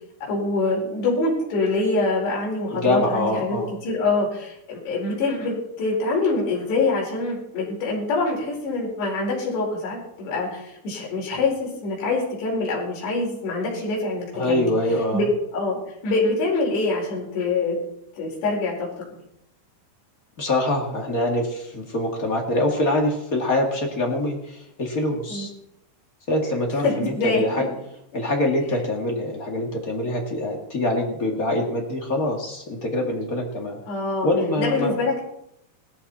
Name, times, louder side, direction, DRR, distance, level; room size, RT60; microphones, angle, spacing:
voice 1, 0.3-3.6 3.8-14.7 15.1-15.2 15.5-15.8 16.0-17.8 18.2-18.8 19.1-19.2 25.3-25.5 26.8-27.4 33.9-34.3 34.6-35.2, left 3 dB, 65° left, -3 dB, 6.7 m, -25 dB
voice 2, 2.7-3.7 14.3-15.2 20.4-25.5 26.3-27.7 28.1-33.8 34.2-35.0, left 1 dB, 50° left, 0 dB, 1.0 m, -24 dB
18.0 x 13.5 x 4.3 m, 0.78 s
omnidirectional pair, 5.3 m